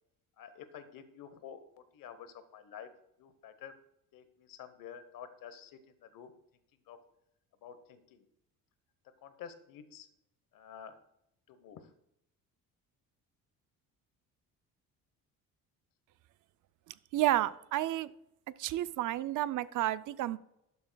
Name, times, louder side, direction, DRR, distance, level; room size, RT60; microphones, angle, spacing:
voice 1, 0.4-2.9 3.2-3.8 4.1-6.3 6.9-7.0 7.6-8.3 9.2-10.1 10.5-11.0 11.5-11.9, left 8 dB, 70° left, 11 dB, 1.1 m, -50 dB
voice 2, 17.1-18.1 18.6-20.4, right 14 dB, 60° right, 15 dB, 0.5 m, -31 dB
12.0 x 6.7 x 2.3 m, 0.81 s
cardioid pair, 100°, 35 cm